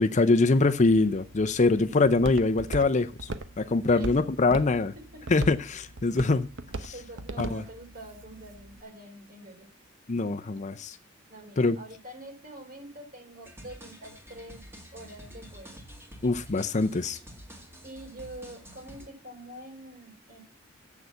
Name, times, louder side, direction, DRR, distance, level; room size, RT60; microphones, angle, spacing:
voice 1, 0.0-3.3 3.6-4.9 5.3-6.5 6.8-6.9 7.4-7.6 10.1-11.0 11.6-11.8 16.2-17.2, left 3 dB, 35° left, 0.6 m, -24 dB
Walk footsteps, 0.9-8.8, right 2 dB, 60° right, 0.9 m, -40 dB
voice 2, 6.9-9.7 11.3-14.6 14.9-15.8 17.8-20.4, right 1 dB, 45° right, 3.8 m, -45 dB
sound 1, 13.4-19.1, equal, 10° right, 2.1 m, -48 dB
7.9 x 6.6 x 8.2 m
head